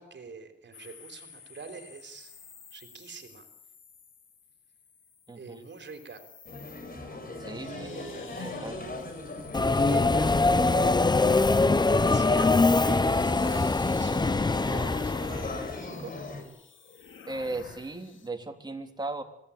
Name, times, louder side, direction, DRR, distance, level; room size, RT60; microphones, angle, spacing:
voice 1, 0.0-2.3 2.7-3.5 5.3-6.2 7.5-8.4 9.8-11.1 11.5-16.1, right 4 dB, 65° right, 7 dB, 3.9 m, -43 dB
sound 1, 0.7-18.3, left 6 dB, 75° left, 2.6 m, -49 dB
voice 2, 5.3-5.6 7.4-7.7 8.3-8.9 17.3-19.2, right 2 dB, 20° right, 4 dB, 3.5 m, -37 dB
sound 2, 6.5-16.4, left 2 dB, 45° left, 6.6 m, -40 dB
Subway metro underground, 9.5-15.8, left 3 dB, 20° left, 0.8 m, -23 dB
26.0 x 18.0 x 8.7 m, 0.81 s
wide cardioid pair, 105°, 20 cm